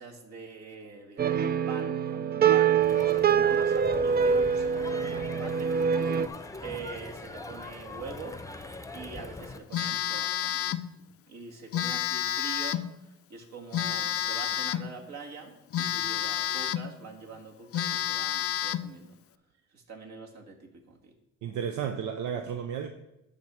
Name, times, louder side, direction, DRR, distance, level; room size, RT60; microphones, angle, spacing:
voice 1, 0.0-5.8 6.6-8.4 8.9-10.7 11.3-19.1 19.7-21.1, right 4 dB, 60° right, 2.1 m, -44 dB
sound 1, 1.2-6.3, right 7 dB, 30° right, 0.4 m, -25 dB
Crowd, 2.8-9.6, left 3 dB, 10° left, 0.7 m, -41 dB
Telephone, 9.7-10.9 11.7-12.9 13.7-14.9 15.7-16.9 17.3-17.4 17.7-18.9, left 11 dB, 50° left, 0.5 m, -30 dB
voice 2, 21.4-22.9, right 8 dB, 80° right, 0.7 m, -32 dB
10.5 x 3.6 x 7.4 m
cardioid pair, 90°, 30 cm